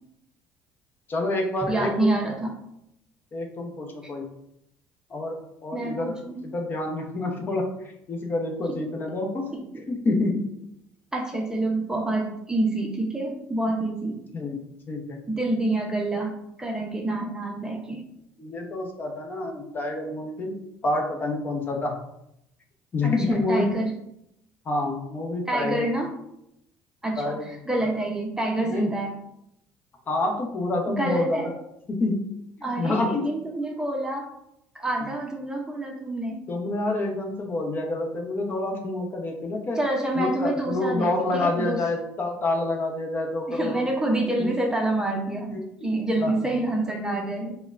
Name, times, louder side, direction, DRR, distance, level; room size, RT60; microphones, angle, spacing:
voice 1, 1.1-2.1 3.3-4.3 5.1-5.4 5.6-6.1 6.4-7.7 8.1-9.4 9.9-10.5 14.3-14.6 14.9-15.2 18.4-20.6 20.8-21.9 22.9-23.7 24.7-25.8 27.2-27.9 28.6-28.9 30.1-31.4 31.9-32.2 32.6-33.2 36.5-39.8 40.1-43.9 44.4-44.5 45.5-45.9 46.2-46.6, left 2 dB, 35° left, 2 dB, 0.7 m, -28 dB
voice 2, 1.6-2.5 4.0-4.1 5.7-6.4 9.5-9.9 11.1-14.2 15.3-18.0 23.0-23.9 25.5-26.1 27.0-29.1 30.9-31.5 32.6-34.3 34.7-36.4 39.8-41.8 43.5-45.5 45.8-47.6, right 2 dB, 10° right, 1 dB, 0.6 m, -27 dB
4.9 x 2.2 x 2.5 m, 0.79 s
supercardioid pair, 95°, 6 cm